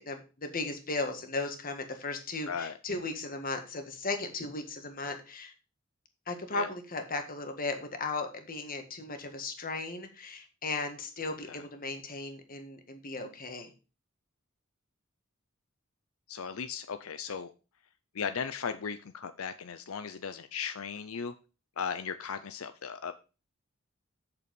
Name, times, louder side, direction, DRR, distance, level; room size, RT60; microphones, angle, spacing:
voice 1, 0.0-5.5 6.3-13.7, left 3 dB, 45° left, 6 dB, 1.7 m, -36 dB
voice 2, 16.3-17.5 18.1-21.3 21.8-23.1, left 6 dB, 85° left, 10 dB, 0.6 m, -36 dB
8.0 x 6.8 x 5.2 m, 0.33 s
head